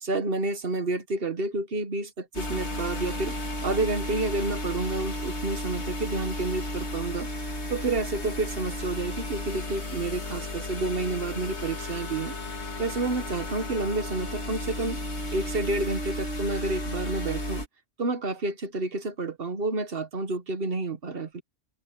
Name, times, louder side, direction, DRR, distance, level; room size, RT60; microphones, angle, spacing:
voice 1, 0.0-3.3 3.6-7.3 7.7-12.4 12.8-15.1 15.3-17.6 18.0-21.4, right 2 dB, 60° right, 1.5 m, -29 dB
sound 1, 2.3-17.7, left 1 dB, 80° left, 2.9 m, -34 dB
omnidirectional pair, 1.1 m